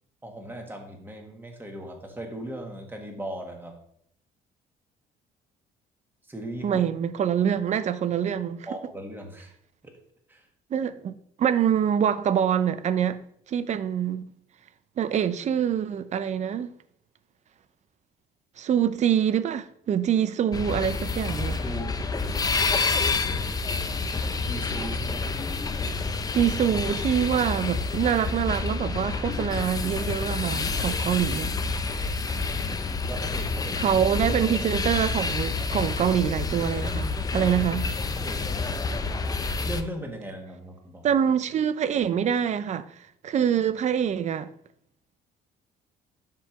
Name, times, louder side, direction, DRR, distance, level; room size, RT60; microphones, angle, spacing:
voice 1, 0.2-3.7 6.3-6.8 8.7-9.5 9.8-9.9 10.3-10.5 21.6-22.0 24.5-25.4 33.1-33.9 38.2-39.3 39.7-41.1, right 1 dB, 10° right, 1.7 m, -38 dB
voice 2, 6.6-8.7 10.7-13.2 13.5-14.2 15.0-16.7 18.6-21.6 26.3-31.6 33.8-37.9 41.0-42.9 43.2-44.5, right 9 dB, 45° right, 0.5 m, -25 dB
sound 1, 20.5-39.8, left 4 dB, 20° left, 0.5 m, -28 dB
7.5 x 3.4 x 5.9 m
cardioid pair, 110°, 17 cm